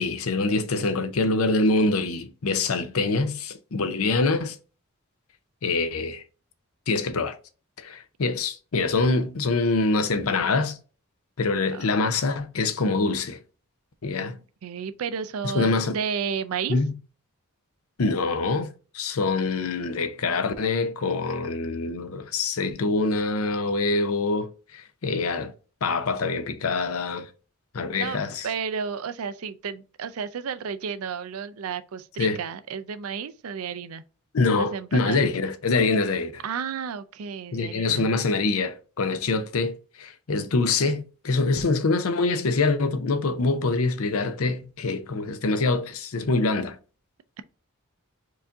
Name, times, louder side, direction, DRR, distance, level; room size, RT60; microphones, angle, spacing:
voice 1, 0.0-4.6 5.6-6.2 6.9-7.4 7.8-10.8 11.4-13.4 14.0-14.4 15.4-16.0 16.7-16.9 18.0-25.5 25.8-27.3 27.7-28.5 32.2-32.4 34.3-36.4 37.5-46.8, left 3 dB, 80° left, 0.6 m, -25 dB
voice 2, 14.6-16.8 28.0-34.0 34.5-35.3 36.4-38.1, right 6 dB, 80° right, 0.4 m, -32 dB
4.7 x 2.7 x 3.6 m
head